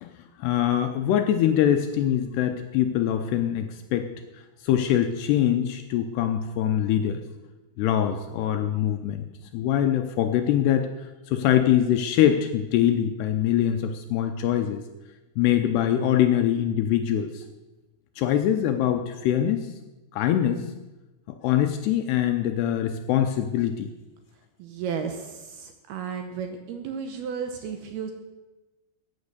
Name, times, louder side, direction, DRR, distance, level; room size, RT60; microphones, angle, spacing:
voice 1, 0.4-4.1 4.6-7.2 7.8-9.3 9.5-14.8 15.4-17.4 18.2-19.7 20.1-20.7 21.3-23.9, left 10 dB, 85° left, 6 dB, 2.5 m, -23 dB
voice 2, 24.6-28.1, right 6 dB, 75° right, 6 dB, 2.5 m, -33 dB
15.0 x 9.5 x 6.7 m, 1.1 s
omnidirectional pair, 5.4 m